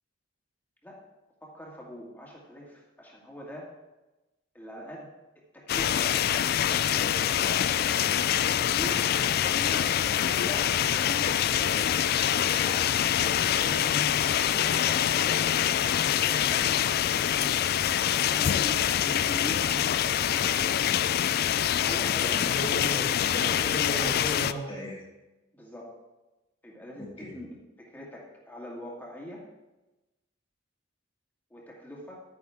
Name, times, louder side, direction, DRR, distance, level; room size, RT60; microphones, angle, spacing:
voice 1, 1.4-3.7 4.5-5.1 5.4-6.5 6.8-7.6 8.7-9.0 9.3-12.8 13.1-15.6 16.2-16.7 18.2-21.0 21.7-22.5 23.3-23.4 25.5-26.0 26.6-27.1 27.3-27.5 27.8-29.5 31.5-32.2, equal, 10° left, -4 dB, 2.0 m, -42 dB
sound 1, 5.7-24.5, left 10 dB, 50° left, 0.3 m, -25 dB
voice 2, 22.2-25.0 26.9-27.3, equal, 25° left, -4 dB, 1.7 m, -37 dB
12.0 x 9.4 x 3.6 m, 1.0 s
head